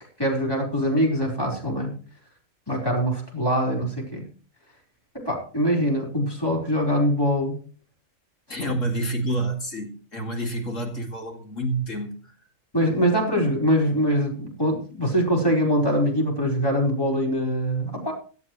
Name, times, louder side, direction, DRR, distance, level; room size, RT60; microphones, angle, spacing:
voice 1, 0.2-1.9 2.7-4.3 5.2-7.6 12.7-18.1, equal, 15° left, 4.6 m, -23 dB
voice 2, 8.5-12.3, right 1 dB, 70° left, 2.7 m, -28 dB
17.5 x 12.0 x 3.2 m
omnidirectional pair, 1.4 m